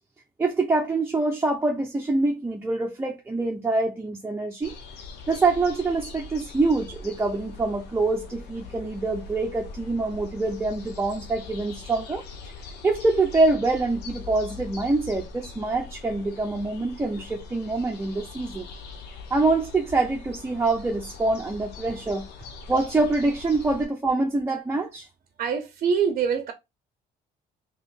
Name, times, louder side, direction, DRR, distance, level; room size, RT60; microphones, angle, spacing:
voice 1, 0.4-4.7 5.3-12.2 12.8-18.7 19.3-22.3 22.7-25.1, right 3 dB, 15° right, 0.7 m, -25 dB
sound 1, 4.6-23.8, left 4 dB, 80° left, 0.9 m, -42 dB
voice 2, 25.4-26.5, right 6 dB, 50° right, 0.6 m, -24 dB
3.0 x 3.0 x 4.0 m
cardioid pair, 110°, 17 cm